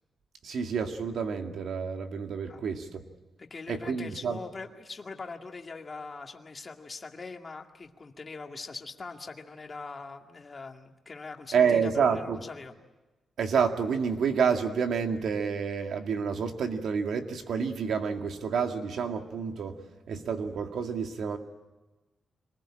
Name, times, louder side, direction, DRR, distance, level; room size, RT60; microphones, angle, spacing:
voice 1, 0.4-3.0 3.7-4.4 11.5-12.4 13.4-19.8 20.1-21.4, right 6 dB, 70° right, 5 dB, 2.2 m, -29 dB
voice 2, 3.5-12.7, left 4 dB, 30° left, 3 dB, 2.1 m, -42 dB
26.0 x 20.0 x 8.8 m, 1.1 s
wide cardioid pair, 130°, 0 cm